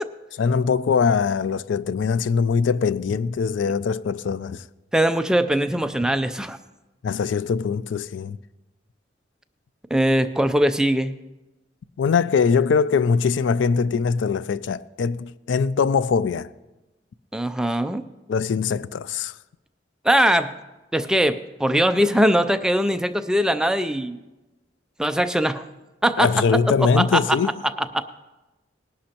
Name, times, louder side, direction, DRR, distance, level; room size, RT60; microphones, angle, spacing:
voice 1, 0.4-4.6 7.0-8.4 12.0-16.5 18.3-19.3 26.2-27.5, left 5 dB, 85° left, 0.4 m, -22 dB
voice 2, 4.9-6.6 9.9-11.1 17.3-18.0 20.0-20.5 20.9-24.2 25.0-25.6 26.0-26.3 26.8-27.2 27.9-28.0, equal, 5° right, 0.4 m, -21 dB
19.5 x 11.5 x 2.9 m
head